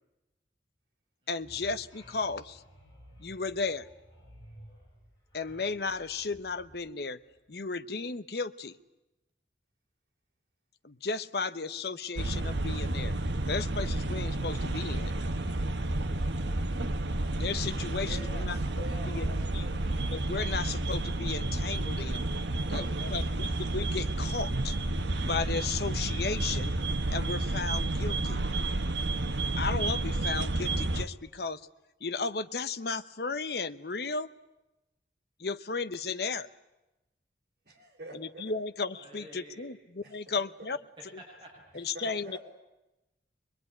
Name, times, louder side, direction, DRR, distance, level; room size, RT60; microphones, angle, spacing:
voice 1, 1.3-2.6 3.2-3.9 5.3-7.2 7.5-8.8 10.8-13.1 13.5-15.1 17.4-18.6 19.1-19.3 19.5-19.7 20.1-22.3 22.7-22.9 23.1-24.8 25.2-26.7 27.1-28.4 29.6-31.6 32.0-34.3 35.4-36.5 38.1-39.8 40.1-40.8 41.7-42.4, left 4 dB, 60° left, 12 dB, 0.9 m, -34 dB
sound 1, 1.4-7.6, equal, 20° left, 7.7 m, -54 dB
sound 2, 12.2-31.0, right 2 dB, 85° right, 1.2 m, -31 dB
voice 2, 18.0-19.8 22.0-23.2 37.6-38.5 40.0-40.4 41.9-42.4, right 1 dB, 55° right, -1 dB, 4.5 m, -46 dB
voice 3, 38.8-39.7 41.0-42.0, right 1 dB, 25° right, -1 dB, 6.1 m, -52 dB
24.0 x 21.5 x 9.6 m, 0.98 s
head